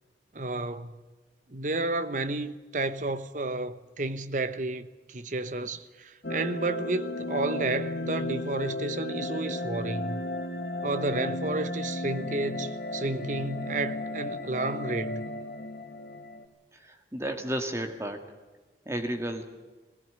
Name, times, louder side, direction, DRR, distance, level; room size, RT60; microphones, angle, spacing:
voice 1, 0.3-0.9 1.5-10.2 10.8-15.2, right 2 dB, 45° right, 1.0 m, -31 dB
sound 1, 6.2-16.4, left 2 dB, 60° left, 1.8 m, -34 dB
voice 2, 16.7-18.2 18.9-19.4, right 1 dB, 15° right, 1.8 m, -32 dB
20.0 x 18.0 x 9.6 m
head